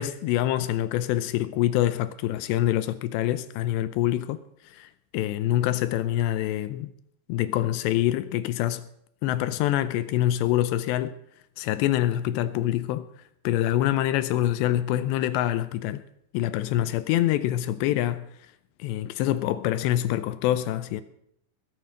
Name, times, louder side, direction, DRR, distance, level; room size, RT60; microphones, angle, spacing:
voice 1, 0.0-4.4 4.7-6.9 7.3-8.9 9.2-11.2 11.6-13.1 13.4-16.0 16.3-18.3 18.8-21.0, left 13 dB, 80° left, 2.6 m, -25 dB
21.0 x 7.1 x 6.4 m
omnidirectional pair, 5.5 m